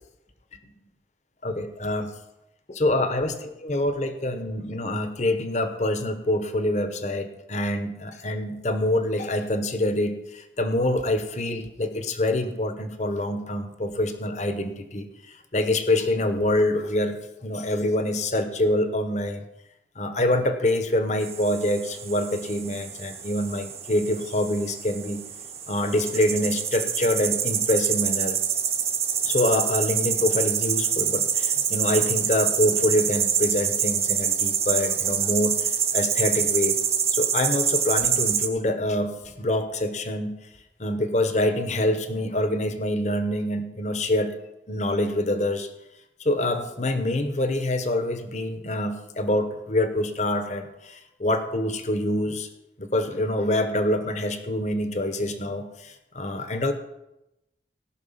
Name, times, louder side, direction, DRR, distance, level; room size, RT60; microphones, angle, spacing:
voice 1, 1.4-2.1 2.7-15.0 15.5-19.4 20.0-25.2 25.7-28.4 29.2-36.8 37.1-40.4 40.8-44.3 44.7-45.7 46.2-52.5 52.8-56.7, left 1 dB, 40° left, 8 dB, 1.1 m, -26 dB
sound 1, 21.2-38.5, right 8 dB, 35° right, 1.1 m, -26 dB
18.0 x 6.1 x 5.7 m, 0.92 s
head